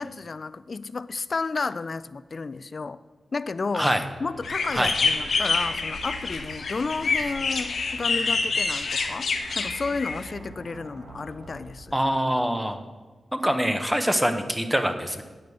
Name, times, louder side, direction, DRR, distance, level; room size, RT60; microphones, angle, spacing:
voice 1, 0.0-3.0 3.3-3.9 4.2-11.9, left 4 dB, 50° left, 15 dB, 0.3 m, -32 dB
sound 1, 3.9-12.1, right 2 dB, 90° right, 1.4 m, -45 dB
sound 2, 4.4-10.3, left 4 dB, 75° left, 0.8 m, -27 dB
voice 2, 11.9-12.8 13.3-15.2, equal, 5° right, 7 dB, 1.0 m, -24 dB
9.3 x 5.2 x 7.9 m, 1.3 s
cardioid pair, 70°, 0 cm